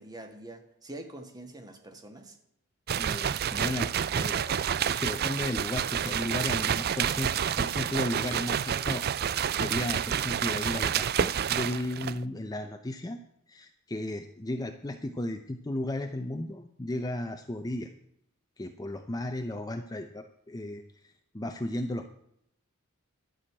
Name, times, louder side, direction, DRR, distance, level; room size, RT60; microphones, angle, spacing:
voice 1, 0.0-2.4, right 1 dB, 20° right, 5 dB, 1.6 m, -45 dB
voice 2, 2.9-4.6 4.9-9.0 9.5-13.2 13.5-17.9 18.6-22.1, left 1 dB, 15° left, 6 dB, 0.6 m, -35 dB
sound 1, 2.9-12.2, right 8 dB, 45° right, 0.4 m, -29 dB
11.5 x 6.4 x 8.6 m, 0.74 s
head